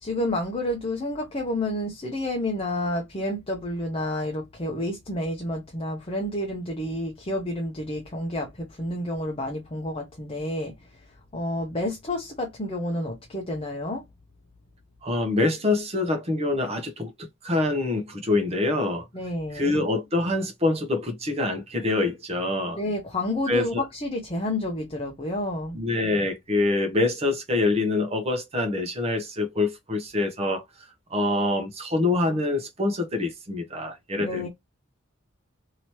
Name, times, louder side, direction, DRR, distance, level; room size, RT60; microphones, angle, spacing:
voice 1, 0.0-11.0 11.3-14.0 19.1-19.7 22.8-25.8 34.2-34.5, left 1 dB, 30° left, 0.7 m, -30 dB
voice 2, 15.0-19.1 19.5-22.8 23.5-23.8 25.7-30.6 31.1-34.5, left 2 dB, 30° right, 0.9 m, -25 dB
3.0 x 2.8 x 3.0 m
head